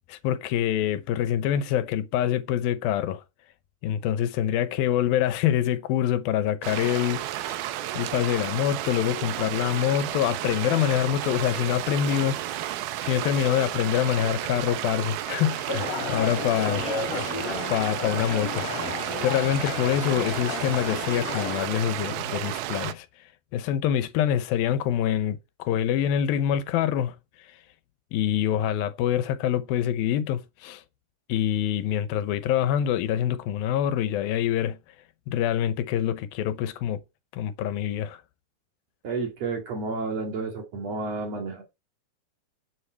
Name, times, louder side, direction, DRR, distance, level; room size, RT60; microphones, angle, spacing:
voice 1, 0.1-3.2 3.8-7.6 7.9-12.7 13.0-16.8 17.7-18.7 19.2-23.1 23.5-27.2 28.1-30.8 31.3-34.8 35.3-37.0 37.3-38.2, left 10 dB, 85° left, 2.6 m, -25 dB
sound 1, 6.6-22.9, right 13 dB, 90° right, 2.7 m, -32 dB
sound 2, 15.7-21.6, left 4 dB, 45° left, 3.3 m, -33 dB
voice 2, 39.0-41.6, right 3 dB, 50° right, 3.0 m, -31 dB
10.0 x 7.8 x 4.5 m
omnidirectional pair, 4.2 m